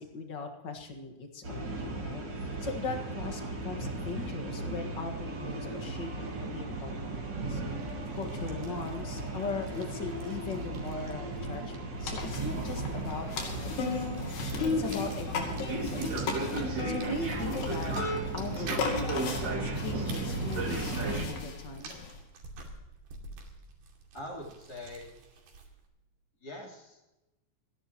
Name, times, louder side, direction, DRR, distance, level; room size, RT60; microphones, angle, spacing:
voice 1, 0.0-7.6 8.1-14.3 14.8-17.9 18.3-22.0, left 3 dB, 55° left, 4 dB, 1.2 m, -40 dB
sound 1, 1.4-21.2, right 2 dB, 35° right, 2.2 m, -35 dB
sound 2, 7.7-25.9, right 3 dB, 70° right, 4.4 m, -49 dB
sound 3, 12.0-22.2, left 4 dB, 75° left, 4.5 m, -36 dB
voice 2, 24.1-25.1 26.4-27.0, left 1 dB, 25° left, -2 dB, 3.6 m, -43 dB
28.5 x 11.0 x 3.0 m, 1.0 s
omnidirectional pair, 4.7 m